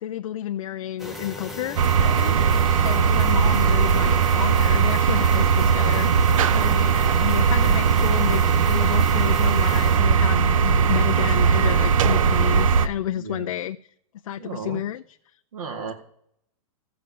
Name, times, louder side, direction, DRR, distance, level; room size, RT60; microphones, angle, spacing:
voice 1, 0.0-6.1 6.5-13.8 14.2-15.0, left 11 dB, 70° left, 0.5 m, -31 dB
sound 1, 1.0-10.0, left 1 dB, ahead, 0.5 m, -36 dB
sound 2, 1.8-12.9, right 6 dB, 70° right, 0.7 m, -19 dB
voice 2, 2.2-3.2 6.4-6.8 13.2-13.5 14.4-14.8 15.5-15.9, right 6 dB, 90° right, 2.2 m, -36 dB
15.0 x 5.1 x 7.7 m
supercardioid pair, 180°, 18 cm